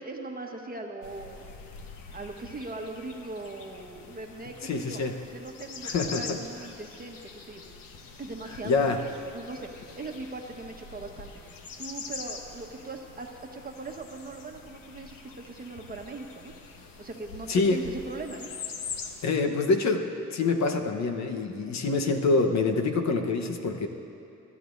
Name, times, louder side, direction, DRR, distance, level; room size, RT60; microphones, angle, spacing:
voice 1, 0.0-1.5 2.1-7.6 8.2-8.9 9.3-16.5 17.0-18.5, right 3 dB, 25° right, 2 dB, 1.3 m, -40 dB
sound 1, 1.0-19.3, left 5 dB, 80° left, 1.1 m, -44 dB
voice 2, 4.6-5.2 5.8-6.4 8.6-9.0 17.5-17.8 19.2-23.9, left 3 dB, 55° left, 4 dB, 1.1 m, -26 dB
24.0 x 12.5 x 2.6 m, 2.9 s
cardioid pair, 95°, 33 cm